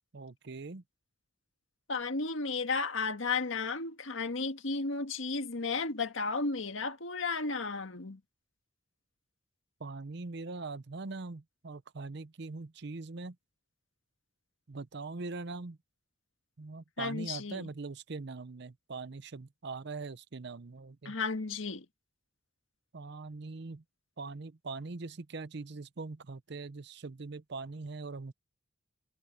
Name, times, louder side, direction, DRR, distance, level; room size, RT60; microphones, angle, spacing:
voice 1, 0.1-0.8 9.8-13.4 14.7-15.8 16.6-21.2 22.9-23.8 24.2-28.3, right 3 dB, 60° right, 0.7 m, -42 dB
voice 2, 1.9-8.2 17.0-17.7 21.1-21.9, left 4 dB, 85° left, 1.7 m, -33 dB
head